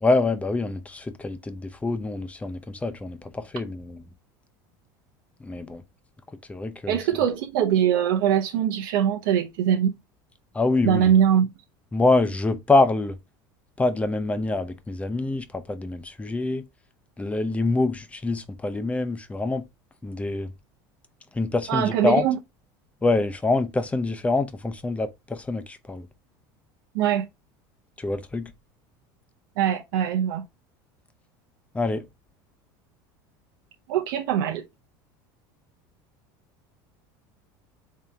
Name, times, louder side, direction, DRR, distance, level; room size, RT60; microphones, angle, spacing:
voice 1, 0.0-4.0 5.4-5.8 6.5-7.0 10.5-11.1 11.9-13.2 13.8-16.7 17.2-19.7 20.0-20.5 21.3-22.3 23.0-26.1 28.0-28.5 31.7-32.1, left 2 dB, 10° left, 0.6 m, -25 dB
voice 2, 6.9-9.9 10.8-11.5 21.7-22.4 26.9-27.3 29.6-30.4 33.9-34.6, right 9 dB, 80° right, 0.6 m, -22 dB
3.6 x 2.8 x 3.4 m
supercardioid pair, 110°, 11 cm